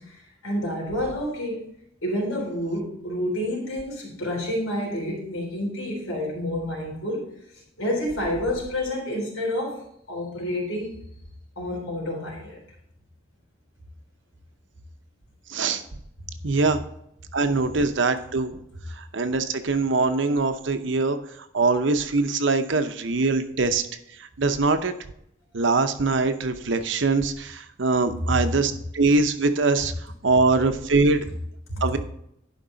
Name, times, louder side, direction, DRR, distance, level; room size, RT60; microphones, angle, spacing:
voice 1, 0.0-1.6 2.0-7.2 7.8-11.0 11.6-12.6 31.7-31.8, left 1 dB, 85° left, -1 dB, 3.7 m, -29 dB
voice 2, 15.5-15.8 16.4-16.8 17.3-18.6 19.0-21.2 21.5-23.8 24.2-24.9 25.5-29.9 30.2-31.2 31.8-32.0, right 3 dB, 60° right, 9 dB, 0.7 m, -23 dB
11.5 x 5.3 x 4.0 m, 0.74 s
head